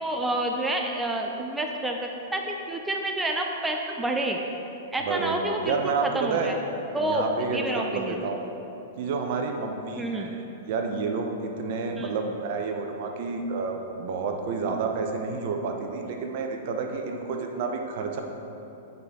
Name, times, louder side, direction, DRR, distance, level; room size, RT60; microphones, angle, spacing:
voice 1, 0.0-4.4 4.9-6.6 6.9-7.2 7.5-8.2 10.0-10.3 11.9-12.1, right 1 dB, 10° right, 2 dB, 0.5 m, -29 dB
voice 2, 5.1-6.5 7.0-8.5 9.0-18.2, right 4 dB, 55° right, 3 dB, 0.8 m, -30 dB
8.2 x 5.1 x 4.2 m, 2.9 s
hypercardioid pair, 110°, 0 cm